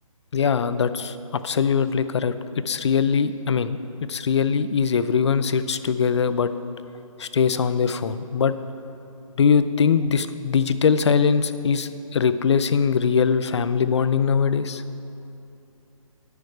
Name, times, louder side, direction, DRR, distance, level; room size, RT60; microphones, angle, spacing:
voice 1, 0.3-2.3 2.7-3.8 4.1-6.5 7.2-8.5 9.4-14.8, left 6 dB, 50° left, 12 dB, 0.4 m, -21 dB
10.0 x 6.5 x 4.8 m, 2.7 s
figure-of-eight pair, 150°, 18 cm